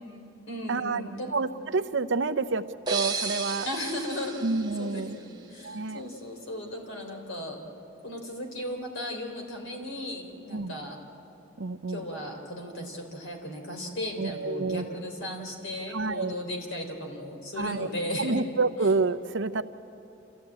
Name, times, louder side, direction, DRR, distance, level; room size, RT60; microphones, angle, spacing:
voice 1, 0.0-1.3 3.7-7.6 8.0-11.0 11.9-18.4, left 1 dB, 70° left, 2 dB, 3.6 m, -36 dB
voice 2, 0.7-1.0 1.3-2.6 2.9-3.7 4.4-5.2 5.6-6.0 10.5-10.7 11.6-12.1 14.2-14.9 15.9-16.3 17.6-17.9 18.2-19.6, right 3 dB, 60° right, 11 dB, 0.7 m, -28 dB
sound 1, 2.9-5.6, right 4 dB, 20° right, 1.2 m, -34 dB
27.5 x 15.0 x 8.8 m, 2.9 s
head